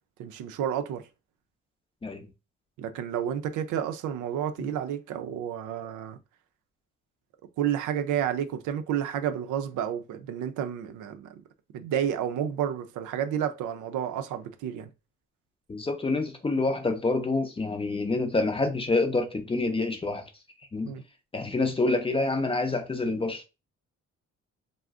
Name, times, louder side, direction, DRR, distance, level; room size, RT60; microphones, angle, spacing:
voice 1, 0.2-1.1 2.8-6.2 7.6-11.4 11.7-14.9 20.8-21.0, right 9 dB, 80° right, 0.5 m, -30 dB
voice 2, 15.7-20.2 20.7-20.9 21.3-23.5, left 3 dB, 20° left, 0.5 m, -27 dB
2.4 x 2.0 x 3.4 m
cardioid pair, 90°, 30 cm